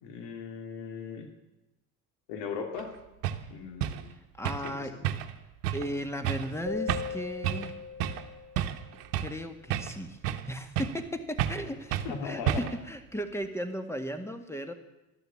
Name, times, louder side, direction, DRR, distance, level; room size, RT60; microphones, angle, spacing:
voice 1, 0.0-1.3 2.3-2.9 3.5-4.2 4.6-5.1 12.0-12.7, left 6 dB, 55° left, 5 dB, 2.8 m, -38 dB
sound 1, 2.8-2.9 3.2-3.4 3.8-4.0 4.4-4.7 5.0-5.4 5.6-5.9 6.2-6.5 6.9-7.2 7.4-7.7 8.0-8.2 8.6-9.4 9.7-10.5 10.8-11.1 11.4-11.6 11.9-12.1 12.5-12.8, right 11 dB, 70° right, 1.1 m, -31 dB
voice 2, 4.4-4.9 5.7-7.7 9.2-10.2 10.5-14.7, equal, 5° left, 8 dB, 1.9 m, -36 dB
sound 2, 6.7-8.9, left 7 dB, 35° left, 4.3 m, -38 dB
13.0 x 12.0 x 7.7 m, 0.95 s
hypercardioid pair, 70°, 48 cm